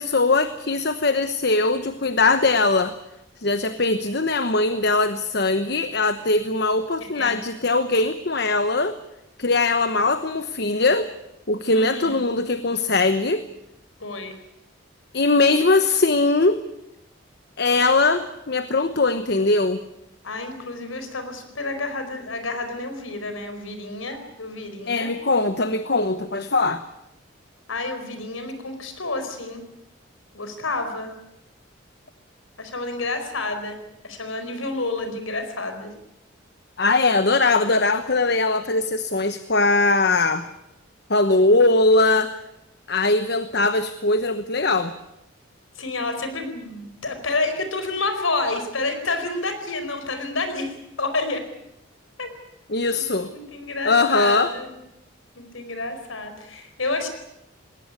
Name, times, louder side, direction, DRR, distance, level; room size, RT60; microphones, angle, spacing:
voice 1, 0.0-2.9 3.4-9.0 9.4-11.1 11.5-13.4 15.1-16.6 17.6-19.8 24.9-26.8 36.8-40.4 41.1-42.3 42.9-44.9 52.7-53.3 53.8-54.5, left 3 dB, 55° left, 10 dB, 1.0 m, -20 dB
voice 2, 7.0-7.4 11.7-12.2 14.0-14.3 20.2-25.1 27.7-29.6 30.3-31.1 32.6-33.8 34.0-35.9 45.8-51.4 52.2-52.3 52.9-54.7 55.3-57.1, left 3 dB, 80° left, 8 dB, 4.7 m, -29 dB
20.5 x 19.0 x 9.7 m, 0.85 s
head